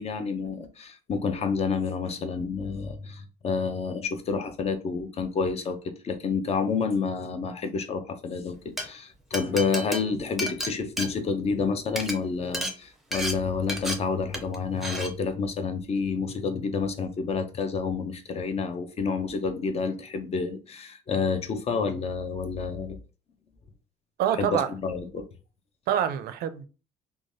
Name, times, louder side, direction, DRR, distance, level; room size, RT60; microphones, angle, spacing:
voice 1, 0.0-23.0 24.4-25.3, left 5 dB, 40° left, 0.5 m, -29 dB
Glass, 8.6-8.8 9.3-11.6 11.9-12.1 12.5-12.7 13.1-13.3 13.7-13.9 14.3-14.6 14.8-15.1, equal, ahead, 0.6 m, -31 dB
voice 2, 24.2-24.7 25.9-26.6, right 9 dB, 70° right, 0.4 m, -26 dB
3.1 x 2.2 x 2.6 m
cardioid pair, 110°, 17 cm